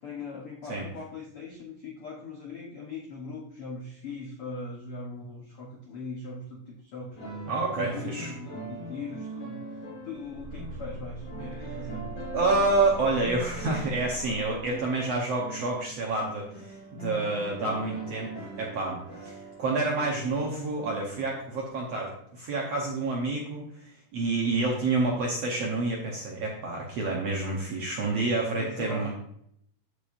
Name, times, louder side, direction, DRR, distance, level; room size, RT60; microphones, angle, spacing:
voice 1, 0.0-7.2 7.8-9.6 10.0-12.1 28.5-29.2, left 3 dB, 85° left, -1 dB, 1.2 m, -40 dB
sound 1, 7.1-21.6, right 2 dB, 35° left, 4.3 m, -42 dB
voice 2, 7.4-8.3 11.6-11.7 12.3-29.1, right 3 dB, 70° right, -1 dB, 1.5 m, -28 dB
sound 2, 10.2-15.1, right 2 dB, 85° right, 2.5 m, -41 dB
14.0 x 5.0 x 2.6 m, 0.70 s
omnidirectional pair, 4.2 m